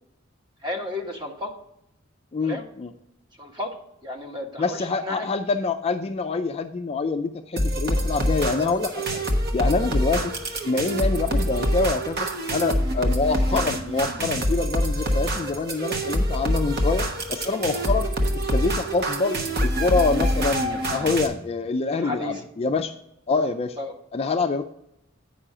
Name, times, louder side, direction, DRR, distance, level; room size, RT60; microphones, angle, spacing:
voice 1, 0.6-1.5 2.4-2.6 3.4-3.7 4.0-5.3 21.9-22.4 23.8-23.9, left 1 dB, 20° right, 2 dB, 1.2 m, -32 dB
voice 2, 2.3-2.9 4.6-9.2 9.5-10.3 10.6-18.1 18.3-22.9 23.3-23.8 24.1-24.6, left 4 dB, 30° left, 7 dB, 0.3 m, -26 dB
sound 1, 7.6-21.3, equal, 50° right, 1.1 m, -25 dB
8.8 x 5.5 x 4.8 m, 0.81 s
head